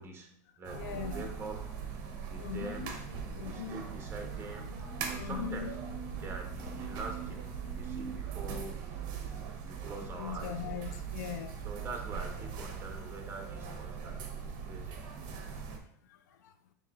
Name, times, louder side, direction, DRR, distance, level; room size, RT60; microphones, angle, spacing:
voice 1, 0.0-1.7 2.3-4.7 5.1-5.8 6.1-7.4 7.7-9.1 9.6-10.6 11.6-14.2 14.4-15.0, right 3 dB, 25° right, 2 dB, 1.1 m, -44 dB
sound 1, 0.6-15.8, right 6 dB, 55° right, 0.8 m, -40 dB
voice 2, 0.7-1.3 2.4-2.9 3.3-3.8 5.2-5.7 10.2-11.5 16.1-16.5, left 10 dB, 75° left, 8 dB, 0.4 m, -40 dB
6.7 x 2.9 x 2.4 m, 0.66 s
supercardioid pair, 110°, 9 cm